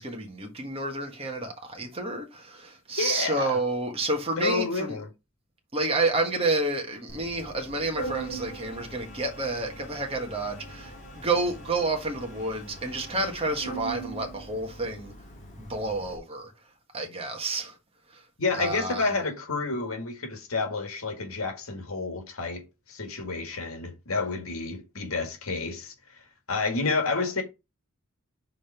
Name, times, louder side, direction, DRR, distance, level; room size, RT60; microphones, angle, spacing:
voice 1, 0.0-4.9 5.7-15.1 15.6-16.5 16.9-17.7 18.1-18.2 18.5-19.1, right 2 dB, 25° right, 1.4 m, -30 dB
voice 2, 3.0-3.6 4.4-5.1 18.4-27.4, left 3 dB, 80° left, 1.9 m, -30 dB
Organ, 7.1-16.2, right 3 dB, 35° left, 1.7 m, -41 dB
5.2 x 3.9 x 5.8 m
head